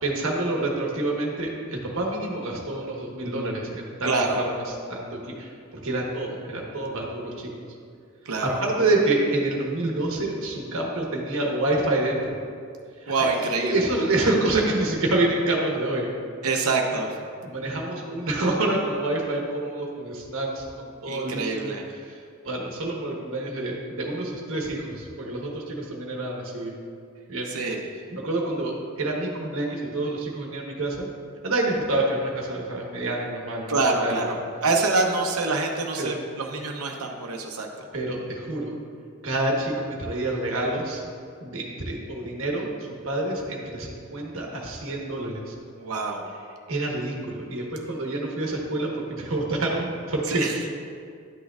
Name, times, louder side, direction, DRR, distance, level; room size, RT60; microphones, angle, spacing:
voice 1, 0.0-4.6 4.9-7.5 8.4-12.4 13.0-16.1 16.5-16.6 17.4-21.7 22.0-22.1 22.4-26.7 27.3-27.5 28.1-31.1 31.4-34.3 36.0-36.1 37.9-38.7 39.2-41.0 41.4-45.5 46.7-50.4, right 2 dB, 70° right, -1 dB, 1.2 m, -27 dB
voice 2, 4.0-4.4 8.2-8.6 13.1-13.9 16.4-17.2 21.1-21.8 27.5-27.9 33.7-37.9 45.8-46.2 50.3-50.6, right 3 dB, 90° right, 1 dB, 0.8 m, -26 dB
11.0 x 6.3 x 2.4 m, 2.2 s
head